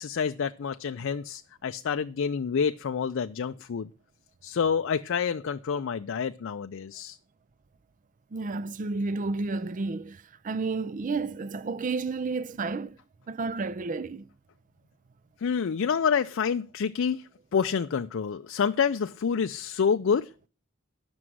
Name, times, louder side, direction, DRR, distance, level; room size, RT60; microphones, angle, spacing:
voice 1, 0.0-3.9 4.4-7.2 15.4-20.5, left 6 dB, 60° left, 0.4 m, -28 dB
voice 2, 8.3-12.9 13.3-14.3, right 3 dB, 40° right, 0.4 m, -31 dB
11.0 x 6.1 x 6.1 m
head